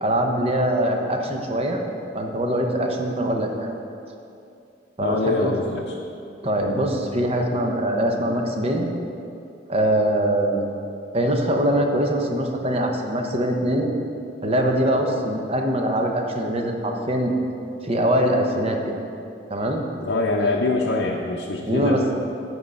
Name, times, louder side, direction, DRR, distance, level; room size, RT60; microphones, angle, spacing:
voice 1, 0.0-1.8 2.1-3.7 5.0-5.5 6.4-8.9 9.7-10.6 11.1-13.9 14.4-17.3 17.8-19.0 19.5-19.8 20.4-20.6 21.7-22.1, right 1 dB, 35° right, 2 dB, 0.8 m, -23 dB
voice 2, 5.0-6.0 20.0-22.1, left 2 dB, 70° left, -1 dB, 0.6 m, -24 dB
7.6 x 4.7 x 6.7 m, 2.6 s
head